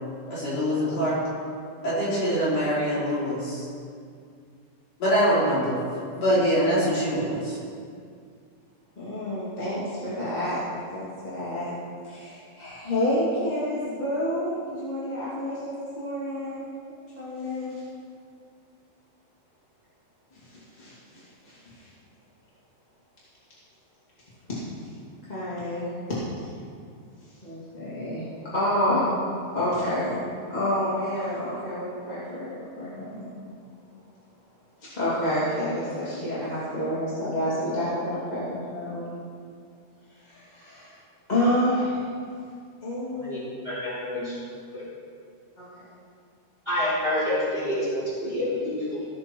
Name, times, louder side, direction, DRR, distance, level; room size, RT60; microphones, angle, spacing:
voice 1, 0.3-1.2 1.8-3.7 5.0-5.8 6.2-7.6, equal, 40° left, -10 dB, 4.4 m, -24 dB
voice 2, 9.0-10.6 10.9-11.7 12.0-16.6 17.2-17.8 20.3-21.9 25.3-25.9 27.4-28.2 28.5-29.1 29.5-30.2 30.5-33.2 34.8-39.2 40.2-41.0 41.3-42.1 42.8-43.3 45.6-45.8, left 1 dB, 15° left, -10 dB, 1.8 m, -29 dB
voice 3, 43.1-44.3 44.7-44.8 46.7-49.0, left 1 dB, 15° right, -9 dB, 3.4 m, -28 dB
16.0 x 7.6 x 4.6 m, 2.3 s
omnidirectional pair, 4.5 m